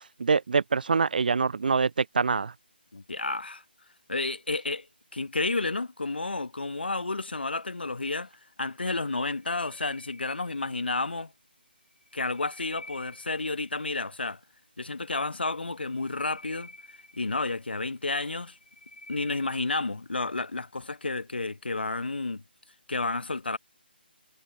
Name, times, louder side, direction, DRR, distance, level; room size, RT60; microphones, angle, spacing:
voice 1, 0.2-2.5, right 5 dB, 55° right, 0.4 m, -25 dB
voice 2, 2.9-3.6 4.1-4.9 5.1-8.3 8.6-11.3 12.1-14.4 14.8-16.7 17.1-18.6 19.1-22.4 22.9-23.6, left 3 dB, 70° left, 1.8 m, -31 dB
sound 1, 9.4-11.0 11.9-13.7 15.7-17.8 18.3-19.8, left 2 dB, 55° left, 5.0 m, -50 dB
figure-of-eight pair, 150°, 6 cm